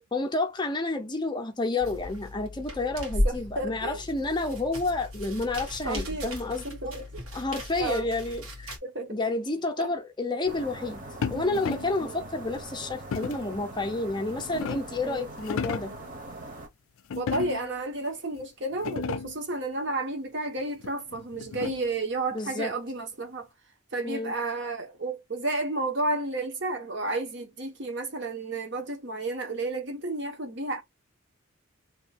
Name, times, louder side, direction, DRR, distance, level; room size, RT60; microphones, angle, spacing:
voice 1, 0.1-6.6 7.3-8.8 9.1-11.0 11.3-15.9 22.3-22.7 24.0-24.3, left 2 dB, 20° left, 0.5 m, -30 dB
sound 1, 1.8-8.8, left 1 dB, 80° right, 1.6 m, -35 dB
voice 2, 3.2-4.0 5.8-6.4 6.6-7.2 7.8-8.1 8.8-9.2 9.8-9.9 12.0-12.2 15.0-15.3 17.2-23.5 23.9-30.8, right 2 dB, 55° right, 1.1 m, -32 dB
sound 2, 10.4-16.7, right 1 dB, 40° right, 1.1 m, -42 dB
sound 3, 11.2-12.0 13.1-13.5 14.2-15.0 15.4-16.0 17.1-17.8 18.4-18.5 18.7-19.5 20.8-22.0, left 6 dB, 75° left, 0.4 m, -34 dB
3.0 x 2.7 x 4.2 m
head